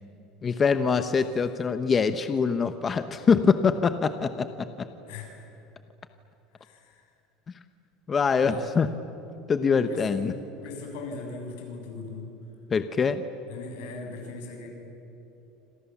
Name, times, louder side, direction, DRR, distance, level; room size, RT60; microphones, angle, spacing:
voice 1, 0.4-4.5 8.1-8.9 9.5-10.3 12.7-13.2, left 5 dB, 20° left, 10 dB, 0.9 m, -24 dB
voice 2, 5.1-5.5 6.6-7.0 8.4-8.6 9.9-12.3 13.5-14.7, left 3 dB, 85° left, 2 dB, 7.3 m, -39 dB
27.0 x 27.0 x 7.3 m, 3.0 s
cardioid pair, 155°, 0 cm